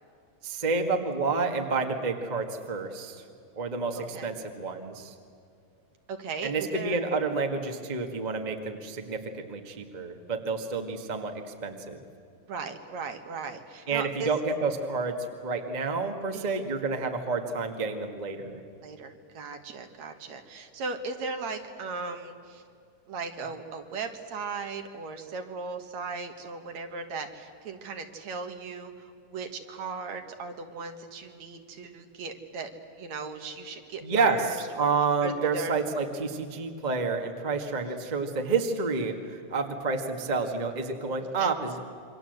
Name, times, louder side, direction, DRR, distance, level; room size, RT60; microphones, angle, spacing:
voice 1, 0.4-3.2 3.5-5.1 6.4-12.0 13.9-18.6 34.0-34.5 34.8-41.8, right 4 dB, 20° right, 4 dB, 1.3 m, -29 dB
voice 2, 3.9-4.3 6.1-7.0 12.5-14.3 16.3-16.6 18.8-22.6 23.1-32.7 33.0-34.9 35.2-35.7 37.8-38.0 41.2-41.5, right 4 dB, 65° right, 6 dB, 2.7 m, -37 dB
28.0 x 24.0 x 8.1 m, 2.4 s
omnidirectional pair, 3.6 m